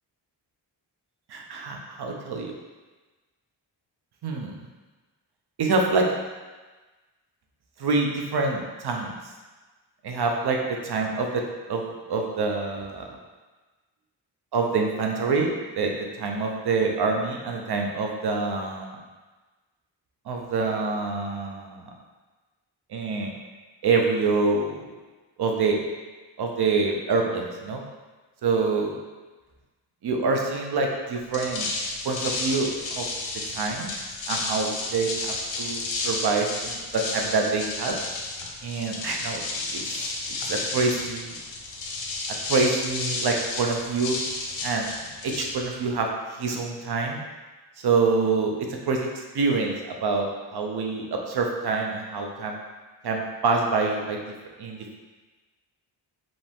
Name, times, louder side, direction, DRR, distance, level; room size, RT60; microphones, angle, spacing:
voice 1, 1.3-2.5 4.2-4.6 5.6-6.1 7.8-9.2 10.0-13.1 14.5-18.9 20.3-21.9 22.9-23.3 23.8-24.9 25.4-25.8 26.4-27.8 28.4-29.0 30.0-31.7 32.0-33.1 33.5-33.9 34.3-38.0 38.6-39.4 39.7-40.0 40.4-41.3 42.5-44.2 44.6-44.9 45.2-47.2 47.8-52.6 53.0-54.2 54.6-55.0, right 4 dB, 60° right, 2 dB, 0.8 m, -26 dB
sound 1, 31.2-46.0, left 3 dB, 85° left, 0.8 m, -32 dB
5.2 x 2.9 x 3.5 m, 1.2 s
wide cardioid pair, 135°, 44 cm